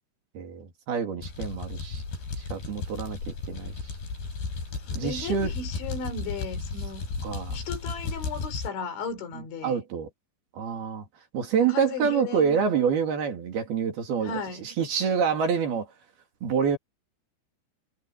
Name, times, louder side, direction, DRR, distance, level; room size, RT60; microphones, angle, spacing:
voice 1, 0.3-2.0 2.5-3.2 3.5-3.7 4.9-5.5 7.2-7.6 9.6-10.1 10.5-11.1 11.3-15.9 16.4-16.8, right 7 dB, 60° right, 4.4 m, -27 dB
sound 1, 1.2-8.7, left 4 dB, 55° left, 9.5 m, -34 dB
voice 2, 4.9-7.1 7.5-9.8 11.6-12.6 14.2-14.8, left 4 dB, 75° left, 6.1 m, -35 dB
omnidirectional pair, 5.4 m